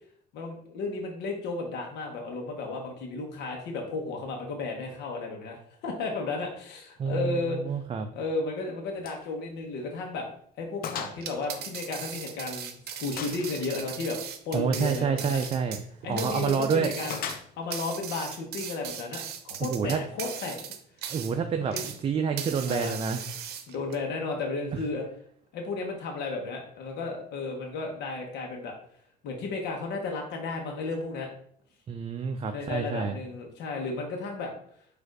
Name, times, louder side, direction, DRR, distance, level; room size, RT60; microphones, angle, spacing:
voice 1, 0.3-7.6 8.1-10.3 10.6-14.2 14.4-15.4 16.0-17.2 17.6-20.6 21.7-21.9 22.7-23.0 23.7-25.0 25.5-28.7 29.2-31.3 32.5-34.5, left 3 dB, 80° left, 1 dB, 1.0 m, -33 dB
voice 2, 7.0-8.1 14.5-15.8 16.1-16.9 19.6-20.0 21.1-23.3 24.7-24.8 31.9-33.2, right 6 dB, 35° right, 6 dB, 0.4 m, -28 dB
Gunshot gunfire, 9.0-9.3 9.6-9.7 10.2-10.3 10.8-11.2 11.5-12.5 13.2-13.7 15.3-15.6 17.1-17.8, left 7 dB, 60° left, 0.6 m, -38 dB
sound 1, 11.1-22.0 22.4-24.0, right 8 dB, 70° right, 0.6 m, -39 dB
4.4 x 2.6 x 4.7 m, 0.62 s
cardioid pair, 110°, 17 cm